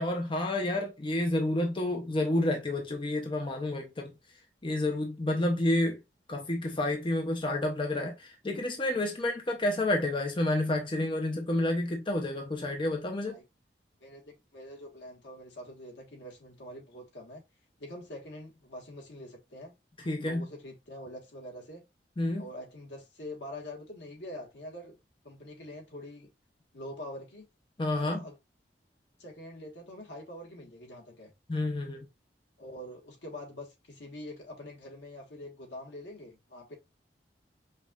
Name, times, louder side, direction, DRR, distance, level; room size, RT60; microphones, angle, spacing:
voice 1, 0.0-4.1 4.6-6.0 6.3-13.4 20.0-20.5 22.2-22.4 27.8-28.2 31.5-32.0, left 1 dB, 30° left, 0.6 m, -29 dB
voice 2, 14.0-17.4 17.8-19.7 20.2-21.8 22.4-25.0 25.2-26.3 26.7-27.4 27.9-28.4 29.2-31.3 32.6-36.8, left 1 dB, 80° left, 1.3 m, -45 dB
5.4 x 2.4 x 2.3 m
head